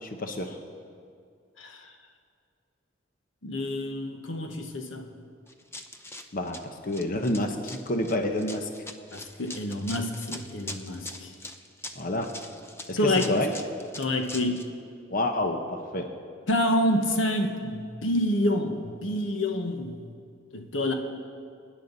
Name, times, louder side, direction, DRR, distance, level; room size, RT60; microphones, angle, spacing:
voice 1, 0.0-0.6 6.3-8.7 11.9-12.3 12.9-13.5 15.1-16.1, left 1 dB, 45° left, 4 dB, 1.0 m, -29 dB
voice 2, 3.4-5.1 9.1-11.3 13.0-13.3 13.9-14.7 16.5-20.0 20.5-20.9, left 1 dB, 85° left, 4 dB, 1.3 m, -28 dB
Run, 5.5-14.7, left 2 dB, 15° left, 0.7 m, -42 dB
25.5 x 10.0 x 4.1 m, 2.2 s
head